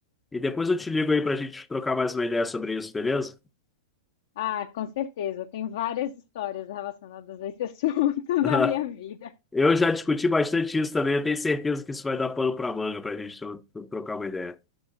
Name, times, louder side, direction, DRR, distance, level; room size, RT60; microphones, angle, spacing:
voice 1, 0.3-3.3 8.4-8.7 9.5-14.6, left 3 dB, 10° left, 0.6 m, -26 dB
voice 2, 4.4-9.3, left 12 dB, 50° left, 0.6 m, -29 dB
12.5 x 6.2 x 2.4 m
figure-of-eight pair, 105°, 0 cm